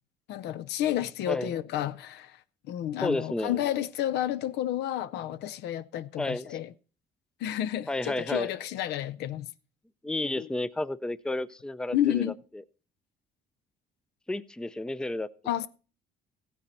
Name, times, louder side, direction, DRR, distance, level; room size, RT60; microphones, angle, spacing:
voice 1, 0.3-2.3 2.7-6.7 7.4-9.5 10.4-10.5 11.9-12.3 15.5-15.7, left 12 dB, 80° left, 0.7 m, -30 dB
voice 2, 1.3-1.6 3.0-3.6 6.2-6.6 7.9-8.5 10.0-12.3 14.3-15.3, left 2 dB, 5° left, 0.5 m, -31 dB
15.0 x 9.3 x 4.3 m
cardioid pair, 110°, 17 cm